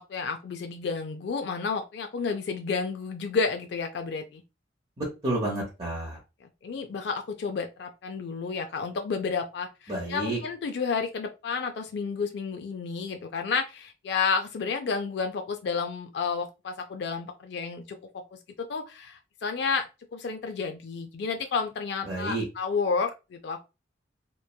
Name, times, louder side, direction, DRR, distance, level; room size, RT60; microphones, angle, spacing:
voice 1, 0.0-4.4 6.4-18.0 18.3-19.9 20.1-23.6, left 5 dB, 60° left, 6 dB, 0.3 m, -31 dB
voice 2, 5.0-6.2 9.9-10.4 22.0-22.4, right 1 dB, 30° right, -6 dB, 0.8 m, -30 dB
3.0 x 2.2 x 2.2 m, 0.27 s
head